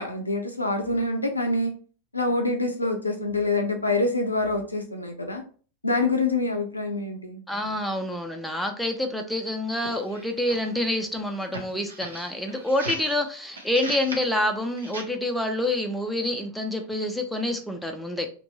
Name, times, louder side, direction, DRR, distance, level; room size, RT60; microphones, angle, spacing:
voice 1, 0.0-1.7 2.1-5.4 5.8-7.4, left 2 dB, 85° left, 3 dB, 0.4 m, -26 dB
voice 2, 7.5-18.3, left 1 dB, ahead, 3 dB, 0.4 m, -27 dB
sound 1, 9.7-10.8 11.4-13.2 13.5-14.3 14.8-15.0, right 1 dB, 75° right, 0.6 m, -38 dB
2.9 x 2.5 x 2.8 m, 0.40 s
figure-of-eight pair, 90°, 0 cm